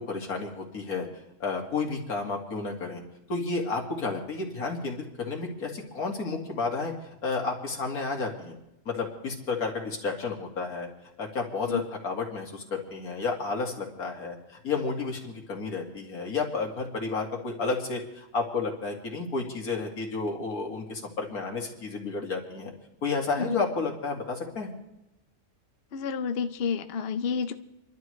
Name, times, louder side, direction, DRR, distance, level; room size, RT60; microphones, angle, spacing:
voice 1, 0.1-1.1 1.4-3.0 3.3-6.9 7.2-8.6 8.9-10.9 11.2-22.7 23.0-24.7, left 4 dB, 90° left, 1 dB, 2.6 m, -31 dB
voice 2, 25.9-27.5, left 6 dB, 50° left, 8 dB, 0.8 m, -30 dB
29.0 x 12.0 x 3.2 m, 0.89 s
omnidirectional pair, 1.5 m